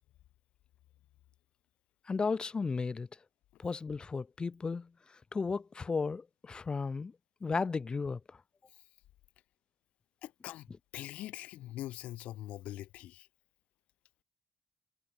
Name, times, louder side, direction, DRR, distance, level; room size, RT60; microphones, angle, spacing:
voice 1, 2.1-3.1 3.6-4.9 5.3-7.1 7.4-8.2, left 4 dB, 40° left, 4.5 m, -34 dB
voice 2, 10.2-10.7 10.9-13.3, left 14 dB, 75° left, 3.7 m, -43 dB
hypercardioid pair, 40°, 2 cm